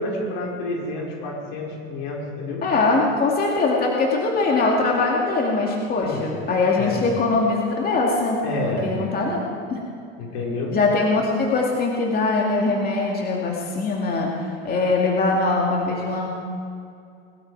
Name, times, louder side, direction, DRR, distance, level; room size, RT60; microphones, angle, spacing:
voice 1, 0.0-2.6 6.0-6.2 6.8-7.0 8.4-8.9 10.2-10.8, left 2 dB, 80° left, -2 dB, 5.1 m, -29 dB
voice 2, 2.6-9.8 10.7-16.3, left 3 dB, 30° left, -1 dB, 2.4 m, -22 dB
21.5 x 13.0 x 4.8 m, 2.4 s
supercardioid pair, 130°, 31 cm